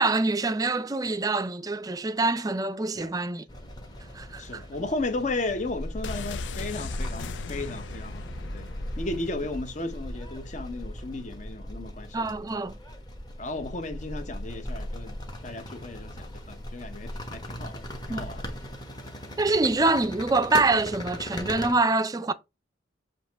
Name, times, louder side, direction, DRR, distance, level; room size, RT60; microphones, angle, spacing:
voice 1, 0.0-3.4 4.1-4.6 12.1-12.8 18.1-18.3 19.4-22.3, right 3 dB, 20° right, 0.4 m, -25 dB
sound 1, 3.5-21.7, equal, 20° left, 1.2 m, -38 dB
voice 2, 4.4-8.3 8.5-8.7 9.0-12.2 12.5-12.6 13.4-15.2 15.4-17.8 18.1-18.4, left 2 dB, 40° left, 0.9 m, -34 dB
sound 2, 6.0-9.8 10.1-10.2, left 5 dB, 75° left, 0.4 m, -39 dB
7.2 x 3.0 x 4.5 m
head